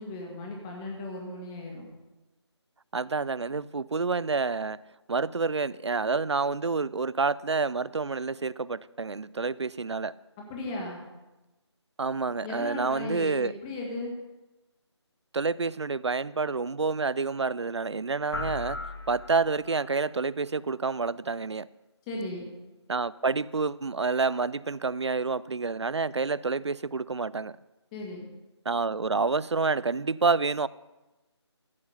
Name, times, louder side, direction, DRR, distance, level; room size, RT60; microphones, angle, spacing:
voice 1, 0.0-1.9 10.4-11.0 12.4-14.1 22.1-22.5 27.9-28.3, left 2 dB, 10° left, 1.7 m, -36 dB
voice 2, 2.9-4.8 5.1-10.1 12.0-13.5 15.3-18.8 19.1-21.7 22.9-27.6 28.7-30.7, right 4 dB, 70° right, 0.4 m, -28 dB
sound 1, 18.3-19.9, left 3 dB, 60° left, 1.4 m, -37 dB
14.5 x 7.8 x 5.6 m
figure-of-eight pair, 160°, 15 cm